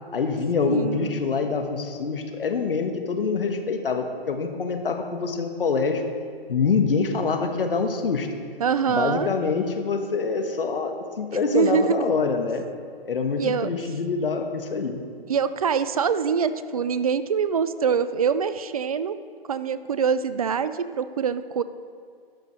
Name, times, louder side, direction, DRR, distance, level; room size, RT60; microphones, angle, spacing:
voice 1, 0.1-6.0 6.5-8.3 8.9-12.6 13.0-15.0, left 4 dB, 65° left, 5 dB, 1.3 m, -25 dB
voice 2, 0.7-1.2 8.6-9.3 11.5-12.0 13.4-13.7 15.3-19.2 19.5-21.6, right 6 dB, 40° right, 13 dB, 0.4 m, -24 dB
12.0 x 5.3 x 6.5 m, 2.2 s
hypercardioid pair, 145°, 30 cm